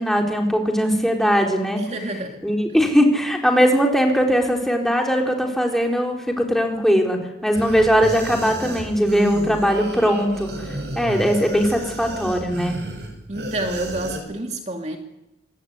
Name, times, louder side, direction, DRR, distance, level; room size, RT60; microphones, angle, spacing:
voice 1, 0.0-1.9 2.4-10.5 11.0-12.8, equal, ahead, 1 dB, 4.0 m, -20 dB
voice 2, 1.8-2.4 13.3-15.0, right 2 dB, 40° right, 3 dB, 2.2 m, -28 dB
sound 1, 7.5-14.2, right 1 dB, 70° right, 7.0 m, -31 dB
26.0 x 20.0 x 9.5 m, 0.96 s
head